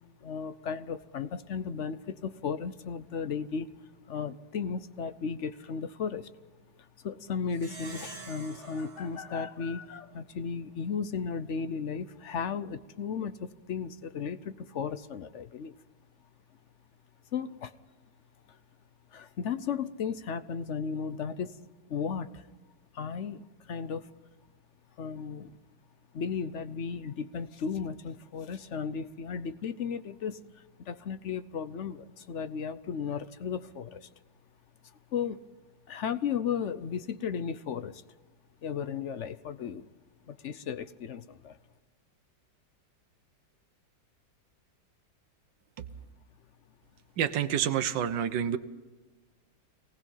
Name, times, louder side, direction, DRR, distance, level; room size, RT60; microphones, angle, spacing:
voice 1, 0.2-3.7 4.1-6.3 7.0-15.8 17.3-17.7 18.5-18.6 19.1-21.5 21.9-22.5 22.9-24.1 25.0-25.6 26.1-34.1 35.1-35.4 35.9-38.0 38.6-39.8 40.3-41.6, left 6 dB, 55° left, 13 dB, 0.8 m, -35 dB
Plucked string instrument, 7.5-10.3, right 3 dB, 25° right, 2.0 m, -47 dB
voice 2, 47.2-48.6, right 9 dB, 75° right, 9 dB, 1.6 m, -28 dB
24.5 x 19.0 x 5.6 m, 1.3 s
omnidirectional pair, 1.9 m